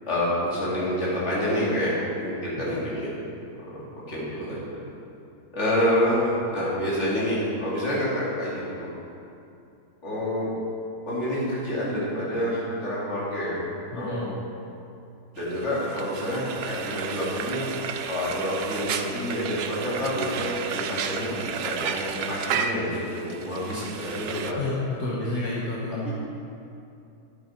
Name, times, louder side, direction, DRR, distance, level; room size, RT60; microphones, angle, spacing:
voice 1, 0.0-3.1 3.7-4.6 5.5-8.9 10.0-10.5 11.1-13.6 13.9-14.4 15.4-17.7 18.1-24.8 26.0-26.1, equal, 45° left, -8 dB, 2.8 m, -28 dB
voice 2, 13.9-14.3 24.5-24.7 25.0-26.1, left 2 dB, 70° left, -6 dB, 1.6 m, -30 dB
Frying (food), 15.4-24.5, right 7 dB, 80° right, 0.5 m, -32 dB
10.0 x 7.9 x 4.4 m, 2.6 s
omnidirectional pair, 1.6 m